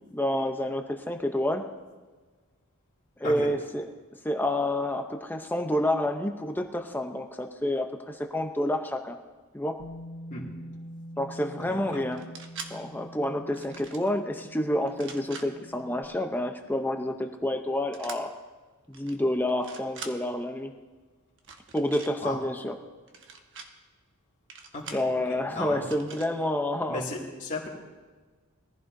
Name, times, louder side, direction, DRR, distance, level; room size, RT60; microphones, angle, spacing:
voice 1, 0.1-1.6 3.2-3.9 4.2-9.2 9.5-9.8 11.2-12.2 12.7-18.3 18.9-20.7 21.7-22.7 24.9-27.0, left 1 dB, 10° left, 4 dB, 0.7 m, -29 dB
Bass guitar, 9.8-16.0, equal, 75° left, 1.8 m, -45 dB
voice 2, 11.6-12.0 22.2-22.4 24.7-25.0 25.3-25.9 26.9-27.7, left 2 dB, 35° left, -6 dB, 2.4 m, -35 dB
sound 1, 12.1-12.7 13.5-14.1 14.9-15.5 17.9-18.2 18.9-19.1 19.5-20.1 21.4-22.1 23.1-23.7 24.5-25.1 25.8-26.3, right 5 dB, 60° right, 1.2 m, -43 dB
21.0 x 15.0 x 2.7 m, 1.4 s
head